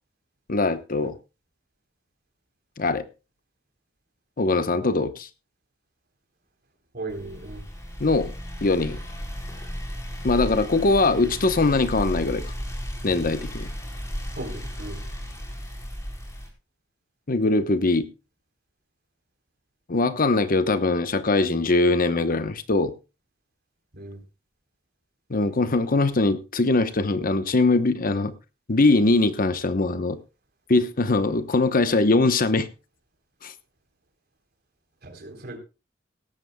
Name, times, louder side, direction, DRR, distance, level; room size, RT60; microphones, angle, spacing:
voice 1, 0.5-1.2 2.8-3.1 4.4-5.3 8.0-8.3 8.6-9.0 10.2-12.4 13.0-13.7 17.3-18.1 19.9-22.9 25.3-28.3 28.7-30.2 30.7-32.7 33.4-33.5, left 3 dB, 50° left, 11 dB, 1.0 m, -22 dB
voice 2, 6.9-7.6 14.4-15.1 23.9-24.2 35.0-35.6, right 2 dB, 55° right, 4 dB, 3.8 m, -37 dB
sound 1, 7.1-16.5, equal, 15° left, 4.0 m, -34 dB
17.5 x 13.5 x 2.3 m, 0.30 s
head